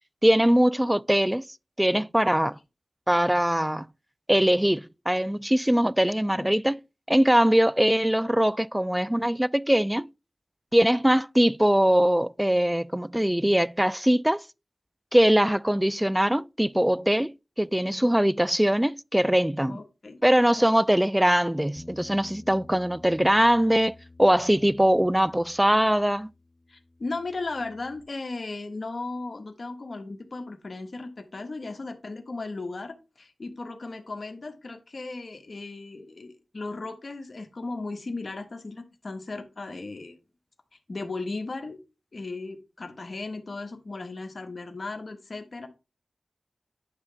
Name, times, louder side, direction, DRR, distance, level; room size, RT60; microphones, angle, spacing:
voice 1, 0.2-1.4 1.8-2.6 3.1-3.9 4.3-6.8 7.1-10.1 10.7-14.4 15.1-19.8 20.2-26.3, equal, 10° right, 0.3 m, -22 dB
voice 2, 19.7-20.2 20.6-20.7 26.7-40.1 40.9-41.8 42.1-45.7, left 3 dB, 60° left, 1.4 m, -36 dB
Bass guitar, 21.8-28.0, left 2 dB, 15° left, 0.9 m, -50 dB
9.7 x 3.2 x 6.9 m
cardioid pair, 45°, 0 cm